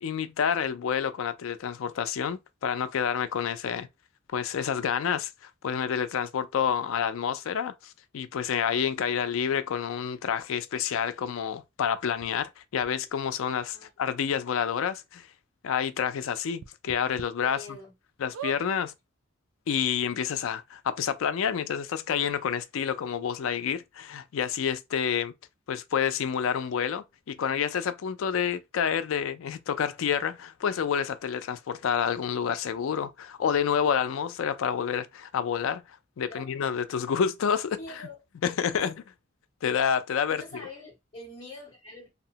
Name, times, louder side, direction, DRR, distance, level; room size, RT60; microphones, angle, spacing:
voice 1, 0.0-3.9 4.3-15.3 15.6-17.6 18.2-18.9 19.7-25.3 25.7-37.7 38.4-38.9 39.6-40.4, left 7 dB, 80° left, 0.4 m, -29 dB
sound 1, 12.2-12.3 12.8-12.9 13.9-14.0 14.3-14.4 14.8-14.9 16.6-17.3 17.8-17.9 18.3-18.6 19.4-19.5 19.7-19.8, right 7 dB, 85° right, 0.4 m, -40 dB
voice 2, 13.7-14.1 17.4-17.9 36.2-36.5 37.7-38.2 38.7-38.9 40.3-42.1, left 2 dB, 25° left, 0.8 m, -45 dB
2.8 x 2.0 x 2.8 m
head